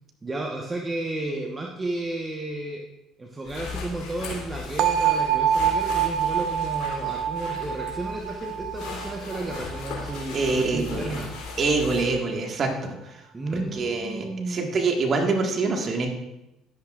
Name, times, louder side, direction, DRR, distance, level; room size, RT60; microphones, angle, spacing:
voice 1, 0.2-2.8 3.2-11.3 13.3-14.7, right 2 dB, 25° right, 1 dB, 1.2 m, -32 dB
sound 1, 3.4-12.2, left 4 dB, 60° left, 3.4 m, -37 dB
sound 2, 4.8-10.6, right 9 dB, 60° right, 0.7 m, -26 dB
voice 2, 10.3-11.1 11.6-13.3 13.5-16.1, right 3 dB, 45° right, 2 dB, 1.7 m, -25 dB
12.0 x 10.5 x 2.5 m, 0.92 s
hypercardioid pair, 60°, 0 cm